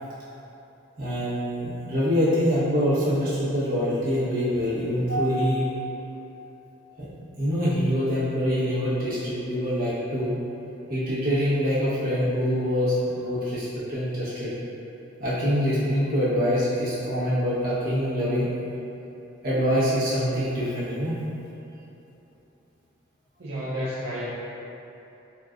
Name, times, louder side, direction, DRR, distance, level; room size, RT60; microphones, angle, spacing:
voice 1, 1.0-5.7 7.0-7.1 7.4-10.3 10.9-14.5 15.2-18.5 19.4-21.1, equal, 50° right, -11 dB, 1.3 m, -25 dB
voice 2, 23.4-24.3, equal, 70° right, -11 dB, 0.7 m, -31 dB
4.4 x 3.4 x 2.6 m, 3.0 s
head